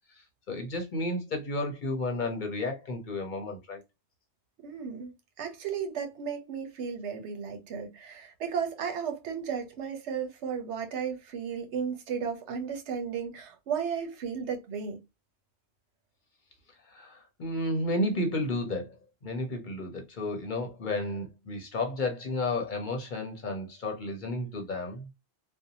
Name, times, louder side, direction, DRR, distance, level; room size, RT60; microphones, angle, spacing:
voice 1, 0.1-3.8 16.9-18.9 19.2-25.1, left 2 dB, 50° left, 0.7 m, -32 dB
voice 2, 4.6-5.1 5.4-15.0, right 7 dB, 85° right, 1.0 m, -34 dB
2.6 x 2.1 x 2.7 m
omnidirectional pair, 1.1 m